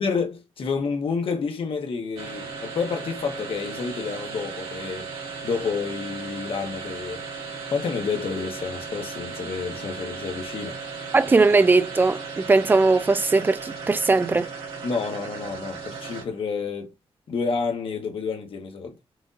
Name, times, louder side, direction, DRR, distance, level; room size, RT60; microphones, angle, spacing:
voice 1, 0.0-5.1 5.4-7.2 7.7-10.8 14.8-16.9 17.3-19.0, left 5 dB, 65° left, 1.0 m, -29 dB
sound 1, 2.2-16.5, right 5 dB, 70° right, 1.9 m, -36 dB
voice 2, 11.1-14.5, right 3 dB, 20° right, 0.3 m, -19 dB
6.0 x 2.6 x 2.5 m
wide cardioid pair, 160°, 10 cm